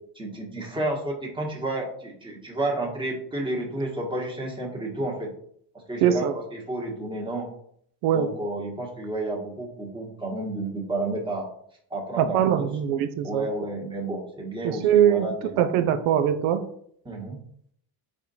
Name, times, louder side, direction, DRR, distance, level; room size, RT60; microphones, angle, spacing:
voice 1, 0.1-5.3 5.9-7.5 8.1-11.5 11.9-12.7 13.2-15.6 17.0-17.4, right 2 dB, 10° right, -2 dB, 1.3 m, -31 dB
voice 2, 6.0-6.3 8.0-8.3 12.2-13.5 14.6-15.3 15.6-16.6, right 10 dB, 90° right, 9 dB, 0.5 m, -22 dB
4.2 x 2.6 x 4.1 m, 0.66 s
cardioid pair, 95°, 48 cm